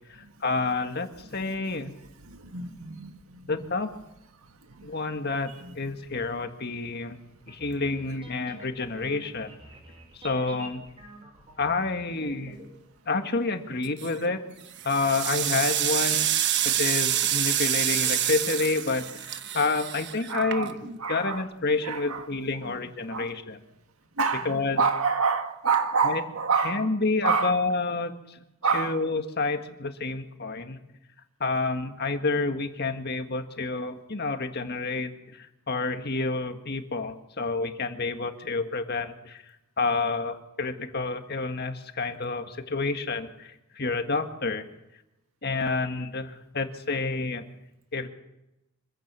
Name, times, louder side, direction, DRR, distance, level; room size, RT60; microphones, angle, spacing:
voice 1, 0.1-1.9 3.5-3.9 4.8-5.5 5.8-7.2 7.5-9.6 10.2-10.9 11.6-12.6 13.1-14.4 14.9-16.3 16.6-20.8 21.1-23.6 24.5-24.8 26.1-26.2 26.7-28.4 28.7-30.8 31.4-35.1 35.4-39.4 39.8-44.6 45.4-47.5 47.9-48.1, left 3 dB, 45° left, 6 dB, 1.8 m, -29 dB
voice 2, 1.2-1.9 2.2-3.7 4.7-4.9 5.2-5.9 20.3-21.5 21.8-22.8 23.1-23.3 24.2-26.9 27.2-27.7 28.6-29.0, right 5 dB, 80° right, 6 dB, 1.8 m, -29 dB
sound 1, 7.4-12.7, right 1 dB, 25° right, 6.0 m, -48 dB
sound 2, 13.8-14.2 14.7-21.0, right 11 dB, 55° right, 1.2 m, -27 dB
25.5 x 15.5 x 6.9 m, 0.92 s
head